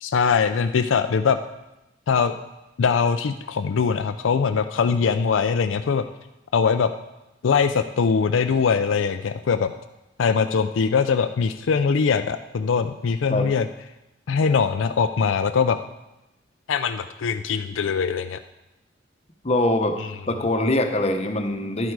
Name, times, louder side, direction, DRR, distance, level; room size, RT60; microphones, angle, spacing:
voice 1, 0.0-1.4 2.1-2.3 2.8-6.0 6.5-6.9 7.4-9.7 10.2-13.7 14.3-15.8 16.7-18.4 20.0-20.1, left 5 dB, 80° left, 9 dB, 0.4 m, -22 dB
voice 2, 19.4-19.9 20.3-21.9, left 1 dB, 35° left, 5 dB, 0.9 m, -23 dB
10.5 x 8.0 x 4.7 m, 0.97 s
head